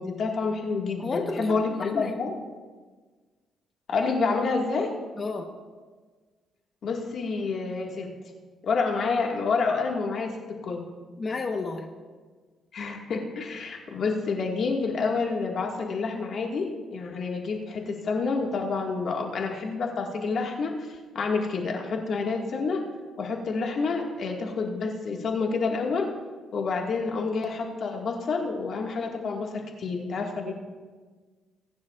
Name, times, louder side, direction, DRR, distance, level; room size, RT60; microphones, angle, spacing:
voice 1, 0.0-2.3 3.9-4.9 6.8-8.1 8.6-10.8 12.7-22.8 23.2-26.1 26.5-30.5, left 4 dB, 60° left, 1 dB, 1.7 m, -28 dB
voice 2, 1.0-2.1 5.2-5.5 11.2-11.9, left 3 dB, 35° left, 3 dB, 1.0 m, -32 dB
21.0 x 10.0 x 2.4 m, 1.4 s
cardioid pair, 90°, 0 cm